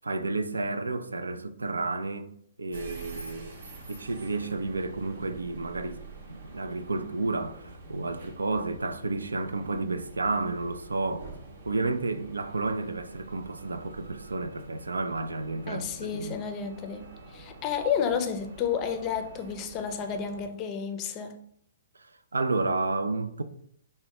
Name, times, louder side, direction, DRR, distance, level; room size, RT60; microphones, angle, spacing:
voice 1, 0.0-2.3 2.6-3.6 3.9-6.0 6.3-11.3 11.7-16.4 22.0-23.4, right 3 dB, 80° right, 0.3 m, -31 dB
sound 1, 2.7-20.5, right 3 dB, 65° right, 0.7 m, -47 dB
voice 2, 15.7-17.1 17.3-21.4, left 7 dB, 30° left, 0.5 m, -31 dB
4.4 x 2.1 x 2.9 m
figure-of-eight pair, 120°, 0 cm